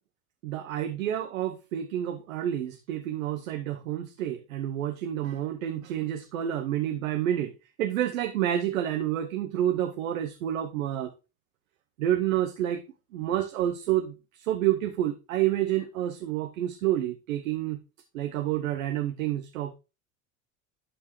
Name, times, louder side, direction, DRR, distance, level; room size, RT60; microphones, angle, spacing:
voice 1, 0.4-7.5 7.8-11.1 12.0-12.8 13.1-17.8 18.1-19.7, right 12 dB, 90° right, 0.8 m, -29 dB
11.5 x 4.7 x 3.0 m
hypercardioid pair, 80°, 40 cm